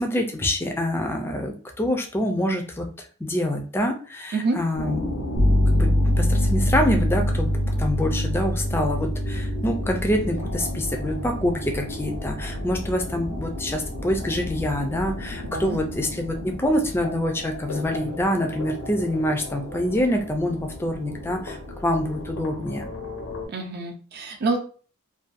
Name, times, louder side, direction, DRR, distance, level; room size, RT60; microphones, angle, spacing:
voice 1, 0.0-5.1 5.4-5.9 6.2-7.5 7.8-21.6 21.8-22.9, left 1 dB, 10° left, 3 dB, 0.4 m, -26 dB
sound 1, 4.7-23.5, left 1 dB, 85° left, 0.7 m, -35 dB
sound 2, 5.4-15.9, equal, 85° right, 0.7 m, -25 dB
voice 2, 23.5-24.6, right 3 dB, 50° right, 2 dB, 0.5 m, -27 dB
2.6 x 2.2 x 2.4 m, 0.40 s
head